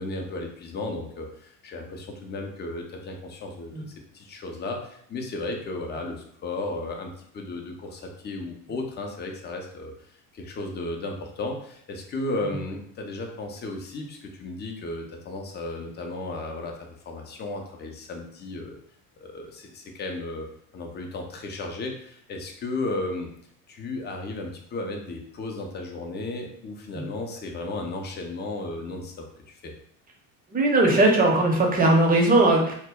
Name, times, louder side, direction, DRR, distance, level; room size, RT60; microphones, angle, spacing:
voice 1, 0.0-3.8 4.1-18.8 19.2-20.5 20.7-23.3 23.7-29.7, left 2 dB, 25° left, 2 dB, 0.5 m, -34 dB
voice 2, 30.5-32.7, right 2 dB, 20° right, 0 dB, 0.7 m, -19 dB
2.1 x 2.0 x 3.5 m, 0.66 s
hypercardioid pair, 80°, 45 cm